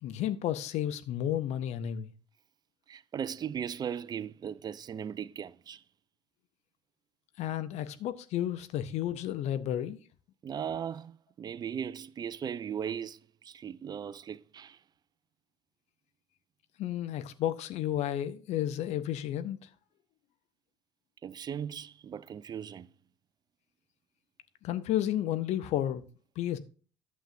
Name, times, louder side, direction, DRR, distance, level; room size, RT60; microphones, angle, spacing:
voice 1, 0.0-2.1 7.4-10.0 16.8-19.7 24.6-26.0 26.4-26.6, left 11 dB, 50° left, 0.7 m, -32 dB
voice 2, 2.9-5.8 10.4-14.8 21.2-22.9, right 8 dB, 30° right, 0.4 m, -38 dB
11.5 x 7.4 x 2.6 m
figure-of-eight pair, 55°, 15 cm